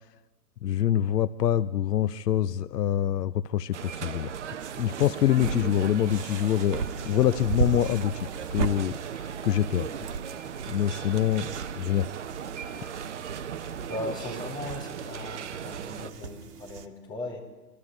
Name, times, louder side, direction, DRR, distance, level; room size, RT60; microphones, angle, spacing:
voice 1, 0.6-4.3 4.8-9.9 10.7-11.5 11.8-12.1, left 11 dB, 80° left, 15 dB, 0.8 m, -25 dB
sound 1, 3.7-16.1, right 8 dB, 45° right, 1.0 m, -37 dB
sound 2, 4.6-16.9, right 5 dB, 75° right, 1.9 m, -37 dB
voice 2, 13.9-17.4, left 2 dB, 15° left, -3 dB, 4.6 m, -38 dB
24.0 x 13.5 x 9.5 m, 1.2 s
hypercardioid pair, 170°, 47 cm